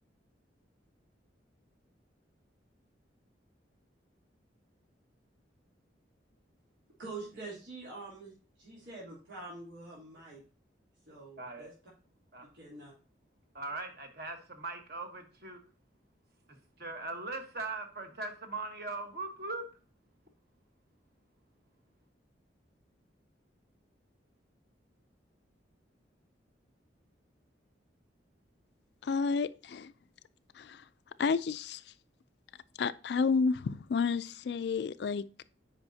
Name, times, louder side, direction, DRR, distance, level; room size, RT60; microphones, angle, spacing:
voice 1, 7.0-10.4 11.1-11.7 12.5-12.9, right 3 dB, 90° right, 3.0 m, -45 dB
voice 2, 11.4-11.7 12.3-12.5 13.5-15.6 16.5-19.6, right 3 dB, 55° right, 1.3 m, -40 dB
voice 3, 29.0-29.9 30.5-30.8 31.2-31.8 32.8-35.4, left 5 dB, 60° left, 0.3 m, -31 dB
8.8 x 5.2 x 2.7 m
head